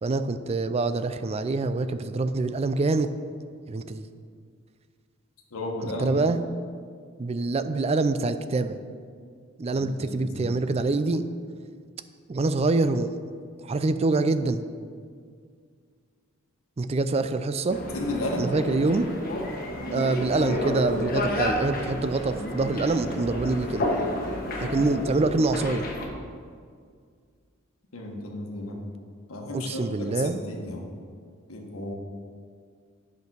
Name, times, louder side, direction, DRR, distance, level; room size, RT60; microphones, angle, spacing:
voice 1, 0.0-3.1 3.7-4.0 5.8-6.4 7.2-8.8 9.6-11.2 12.3-13.1 13.6-14.6 16.8-17.8 18.4-19.1 19.9-23.9 24.6-25.9 29.5-30.4, right 3 dB, 30° right, 11 dB, 0.4 m, -25 dB
voice 2, 5.5-6.4 9.7-10.6 17.9-18.5 27.9-28.8 29.3-30.8 31.5-31.9, left 1 dB, 80° left, 0 dB, 1.2 m, -34 dB
sound 1, 17.7-26.1, left 1 dB, 45° left, 1.2 m, -30 dB
8.1 x 5.2 x 6.2 m, 2.1 s
head